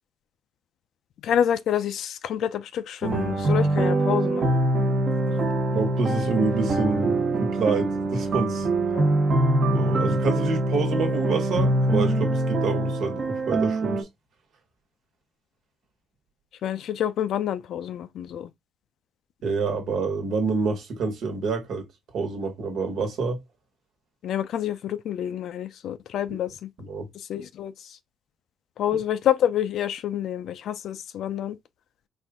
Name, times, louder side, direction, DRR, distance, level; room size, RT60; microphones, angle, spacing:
voice 1, 1.2-4.5 5.3-5.5 8.9-9.1 16.6-18.5 24.2-26.5 27.3-27.7 28.8-31.6, left 10 dB, 75° left, 0.4 m, -27 dB
sound 1, 3.0-14.0, right 2 dB, 45° right, 1.0 m, -24 dB
voice 2, 5.7-8.7 9.7-14.1 19.4-21.9 22.1-23.4 26.8-27.1, right 4 dB, 75° right, 1.4 m, -27 dB
4.3 x 2.5 x 3.5 m
cardioid pair, 90°, 0 cm